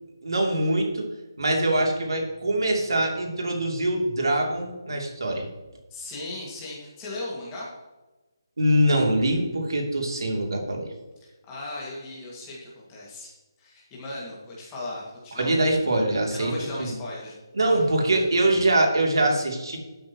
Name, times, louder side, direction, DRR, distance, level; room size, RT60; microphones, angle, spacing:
voice 1, 0.2-1.1 1.4-5.4 8.6-10.9 15.4-16.9 17.5-19.8, right 1 dB, 85° right, 1 dB, 2.9 m, -23 dB
voice 2, 5.9-7.7 11.5-13.3 13.6-15.6 16.3-17.3 17.7-18.2, left 2 dB, 10° left, -5 dB, 2.1 m, -37 dB
12.0 x 8.8 x 3.1 m, 1.1 s
hypercardioid pair, 175°, 2 cm